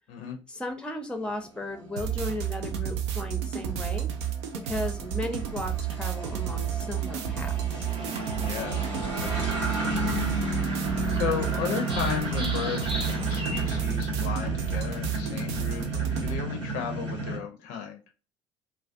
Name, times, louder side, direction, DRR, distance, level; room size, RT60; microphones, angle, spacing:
voice 1, 0.5-4.1 4.6-7.8, left 1 dB, 5° left, 6 dB, 0.5 m, -35 dB
sound 1, 1.3-17.4, right 1 dB, 90° right, 0.9 m, -33 dB
sound 2, 2.0-16.4, right 9 dB, 70° right, 0.4 m, -31 dB
sound 3, 7.9-13.8, right 2 dB, 35° right, 0.7 m, -39 dB
voice 2, 8.4-8.9 9.2-9.4 9.7-10.2 10.7-18.0, left 7 dB, 60° left, 4 dB, 0.5 m, -35 dB
2.3 x 2.1 x 2.5 m, 0.33 s
figure-of-eight pair, 55°, 15 cm